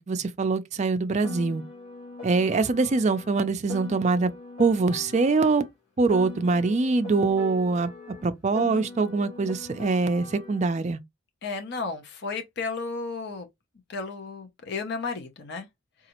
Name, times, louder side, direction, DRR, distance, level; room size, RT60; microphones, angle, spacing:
voice 1, 0.0-1.6 2.2-4.3 4.6-5.6 6.0-7.9 8.2-11.0, right 3 dB, 35° right, 0.4 m, -24 dB
Piano, 1.2-5.7 6.1-10.7, left 3 dB, 30° left, 1.8 m, -41 dB
voice 2, 11.4-13.5 13.9-15.7, left 4 dB, 55° left, 0.7 m, -33 dB
4.0 x 2.4 x 2.9 m
head